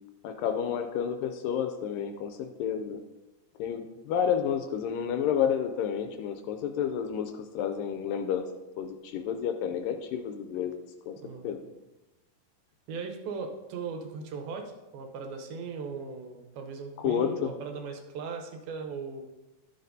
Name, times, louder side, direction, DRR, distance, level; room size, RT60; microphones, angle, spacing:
voice 1, 0.2-3.0 3.6-8.5 8.8-10.8 11.1-11.2 11.4-11.6 17.0-17.5, left 8 dB, 80° left, 6 dB, 2.1 m, -30 dB
voice 2, 11.2-11.6 12.9-14.6 14.9-19.2, right 5 dB, 85° right, 4 dB, 2.8 m, -38 dB
11.5 x 6.6 x 2.7 m, 1.0 s
omnidirectional pair, 4.2 m